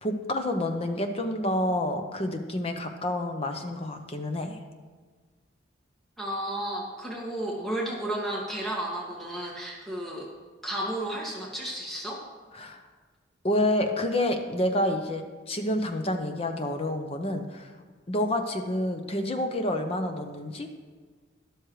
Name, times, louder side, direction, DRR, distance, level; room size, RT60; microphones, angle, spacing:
voice 1, 0.0-4.6 12.5-12.8 13.4-17.7 18.1-20.8, left 1 dB, 30° left, 5 dB, 0.8 m, -28 dB
voice 2, 6.2-10.3 10.6-12.2, right 1 dB, ahead, -5 dB, 2.2 m, -33 dB
12.5 x 12.0 x 3.3 m, 1.5 s
head